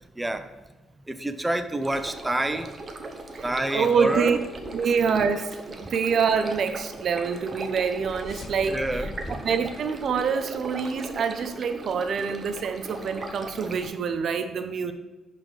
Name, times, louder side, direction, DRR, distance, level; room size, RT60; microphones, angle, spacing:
voice 1, 0.2-0.5 1.1-2.7 3.4-4.4 8.7-9.4, right 1 dB, 10° right, 8 dB, 0.6 m, -28 dB
sound 1, 1.8-13.9, right 2 dB, 35° right, 1.0 m, -39 dB
voice 2, 3.3-4.4 4.7-14.9, right 6 dB, 60° right, 9 dB, 0.6 m, -26 dB
sound 2, 7.4-11.1, left 2 dB, 50° left, 0.5 m, -42 dB
11.0 x 4.3 x 3.2 m, 1.2 s
cardioid pair, 90°, 0 cm